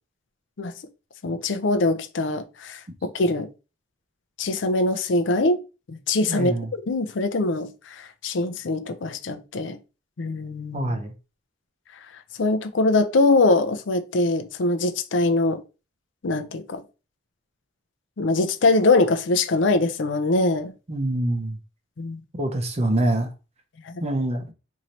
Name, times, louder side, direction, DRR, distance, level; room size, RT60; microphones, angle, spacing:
voice 1, 1.2-3.5 4.4-5.6 5.9-9.8 10.2-10.9 12.4-15.6 16.2-16.8 18.2-20.7 22.0-22.2 23.9-24.0, left 2 dB, 65° left, 0.5 m, -23 dB
voice 2, 6.3-6.7 10.7-11.1 20.9-21.6 22.4-23.3 24.0-24.5, right 1 dB, 35° right, 0.6 m, -25 dB
3.1 x 2.7 x 4.1 m
head